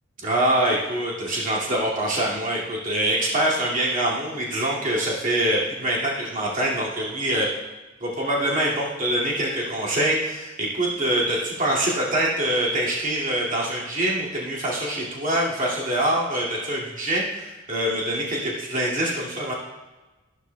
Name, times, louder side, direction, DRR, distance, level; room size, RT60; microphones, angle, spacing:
voice 1, 0.2-7.6 8.0-19.5, right 1 dB, 40° right, -5 dB, 2.3 m, -24 dB
13.5 x 12.0 x 2.3 m, 1.2 s
head